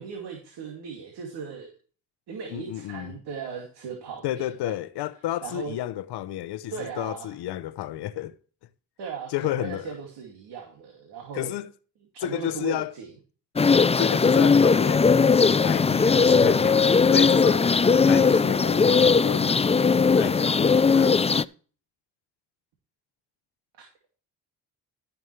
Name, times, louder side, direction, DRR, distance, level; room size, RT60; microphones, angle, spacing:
voice 1, 0.0-1.7 2.3-4.8 5.4-5.7 6.7-7.4 9.0-11.5 12.1-13.1 23.8-24.1, right 6 dB, 90° right, 2.5 m, -38 dB
voice 2, 2.5-3.1 4.2-8.3 9.3-10.0 11.3-11.7 12.2-12.9 14.0-16.8 17.1-19.7 20.2-21.5, left 13 dB, 85° left, 0.8 m, -31 dB
sound 1, 13.6-21.4, left 5 dB, 15° left, 0.4 m, -19 dB
14.5 x 7.3 x 3.2 m
cardioid pair, 65°, 39 cm